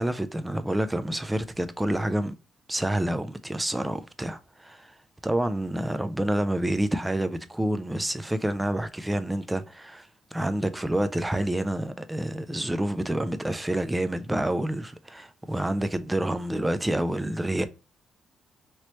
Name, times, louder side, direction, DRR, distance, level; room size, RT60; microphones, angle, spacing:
voice 1, 0.0-2.3 2.7-4.9 5.2-17.7, right 1 dB, 10° right, 0.4 m, -28 dB
3.0 x 2.9 x 3.0 m
cardioid pair, 90°, 0 cm